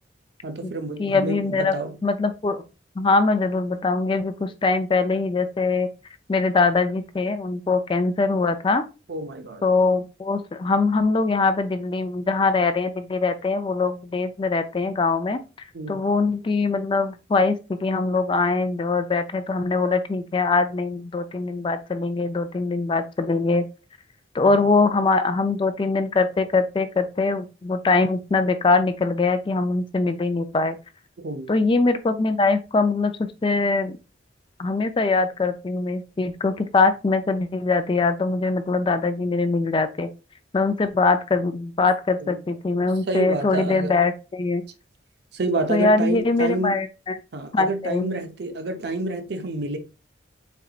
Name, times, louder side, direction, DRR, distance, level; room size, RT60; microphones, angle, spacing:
voice 1, 0.4-2.0 9.1-9.6 15.7-16.0 24.4-24.6 31.2-31.5 42.2-42.4 42.7-44.0 45.3-46.8 47.3-49.8, right 2 dB, 60° right, 0.6 m, -29 dB
voice 2, 1.0-1.7 2.0-2.6 3.0-5.9 6.3-8.8 9.6-15.4 15.9-23.7 24.3-30.8 31.5-33.1 33.4-34.0 34.6-40.1 40.5-44.6 45.7-47.2 47.5-48.1, left 3 dB, 25° left, 0.3 m, -22 dB
4.3 x 3.9 x 2.3 m
head